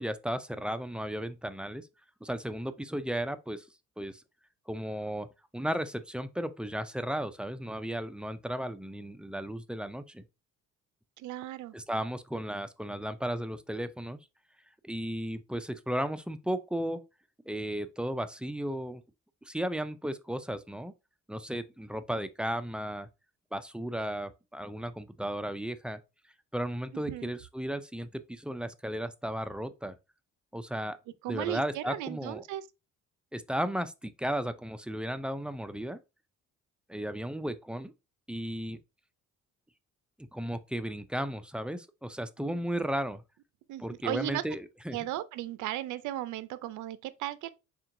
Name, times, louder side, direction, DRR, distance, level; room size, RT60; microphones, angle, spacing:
voice 1, 0.0-1.9 2.2-3.7 4.0-4.2 4.7-5.3 5.5-10.2 11.7-14.2 14.8-17.0 17.5-19.0 19.4-20.9 21.3-23.1 23.5-26.0 26.5-29.9 30.5-31.0 31.3-32.4 33.3-36.0 36.9-37.9 38.3-38.8 40.3-43.2 43.8-45.0, equal, 5° right, 0.3 m, -35 dB
voice 2, 11.2-11.7 26.9-27.3 31.2-32.6 42.4-42.6 43.7-44.4 44.9-47.5, right 14 dB, 75° right, 0.5 m, -36 dB
4.4 x 3.6 x 2.5 m
cardioid pair, 90°, 30 cm